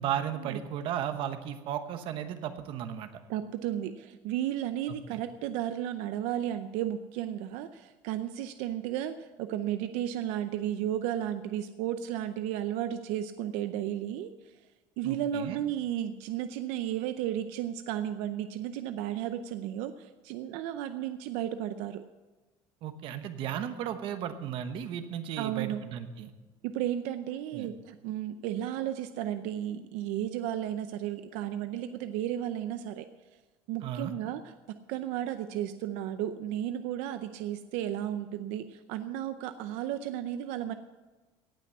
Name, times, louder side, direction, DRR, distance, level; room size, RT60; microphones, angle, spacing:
voice 1, 0.0-3.1 5.1-5.2 15.0-15.6 22.8-26.3 27.5-27.7 33.8-34.1, right 9 dB, 45° right, 9 dB, 1.0 m, -35 dB
voice 2, 3.3-14.3 15.0-22.0 25.4-25.8 26.6-33.1 33.7-34.4 34.7-40.7, right 11 dB, 75° right, 10 dB, 0.6 m, -33 dB
17.5 x 6.0 x 8.1 m, 1.2 s
cardioid pair, 175°, 12 cm